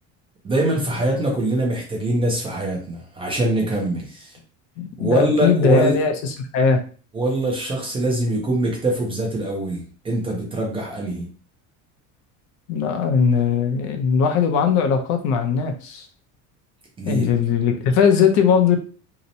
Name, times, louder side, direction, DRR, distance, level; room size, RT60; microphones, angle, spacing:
voice 1, 0.4-4.4 5.0-6.0 7.1-11.3 17.0-17.3, right 1 dB, 15° right, -1 dB, 0.4 m, -23 dB
voice 2, 4.8-6.8 12.7-16.1 17.0-18.8, left 6 dB, 55° left, 5 dB, 0.5 m, -19 dB
2.8 x 2.0 x 2.6 m, 0.38 s
cardioid pair, 165°, 34 cm